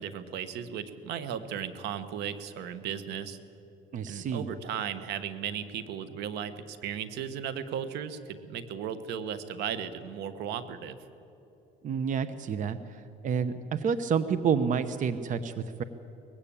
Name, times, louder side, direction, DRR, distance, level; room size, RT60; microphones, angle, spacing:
voice 1, 0.0-3.4 4.1-11.0, right 8 dB, 80° right, 12 dB, 1.2 m, -36 dB
voice 2, 3.9-4.5 11.8-12.8 13.2-15.8, right 6 dB, 50° right, 13 dB, 0.9 m, -29 dB
20.5 x 16.0 x 8.7 m, 2.9 s
cardioid pair, 110°, 17 cm